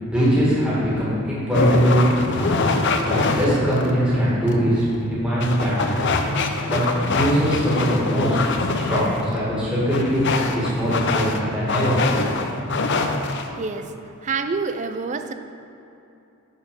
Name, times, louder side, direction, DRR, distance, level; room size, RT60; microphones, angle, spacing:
voice 1, 0.0-2.5 3.1-5.9 6.7-6.8 7.1-8.4 8.7-12.0, equal, 5° right, -9 dB, 2.0 m, -21 dB
sound 1, 1.5-13.5, left 3 dB, 55° left, 0.6 m, -25 dB
voice 2, 13.3-13.9 14.2-15.3, right 4 dB, 35° right, 8 dB, 0.4 m, -28 dB
10.5 x 4.3 x 5.3 m, 2.8 s
head